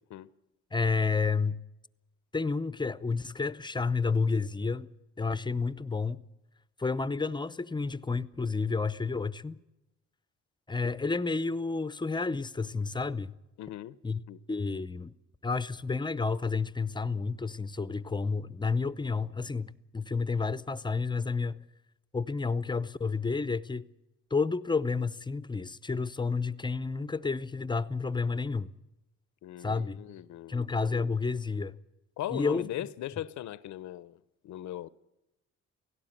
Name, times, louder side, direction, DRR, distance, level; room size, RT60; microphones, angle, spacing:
voice 1, 0.7-1.6 2.3-4.9 5.2-6.2 6.8-9.6 10.7-13.3 14.0-14.2 14.5-15.1 15.4-21.6 22.1-23.9 24.3-28.7 29.6-30.0 30.5-31.8 32.3-32.7, left 4 dB, 15° left, 0.6 m, -30 dB
voice 2, 13.6-14.0 14.3-14.4 29.4-30.6 32.2-34.9, left 13 dB, 70° left, 0.7 m, -39 dB
17.0 x 17.0 x 9.0 m
cardioid pair, 90°, 30 cm